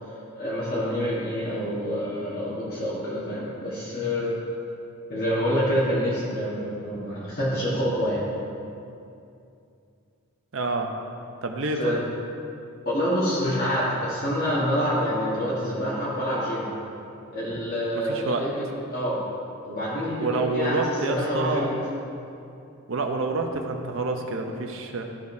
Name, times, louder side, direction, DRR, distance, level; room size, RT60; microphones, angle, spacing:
voice 1, 0.3-4.4 5.1-8.2 11.8-12.0 12.8-16.7 17.3-18.7 18.9-19.2 19.6-21.8, equal, 45° left, -8 dB, 1.4 m, -27 dB
voice 2, 10.5-10.9 11.4-12.0 18.0-18.4 20.2-21.7 22.9-25.0, right 3 dB, 60° right, 4 dB, 0.7 m, -27 dB
13.0 x 5.1 x 2.7 m, 2.6 s
head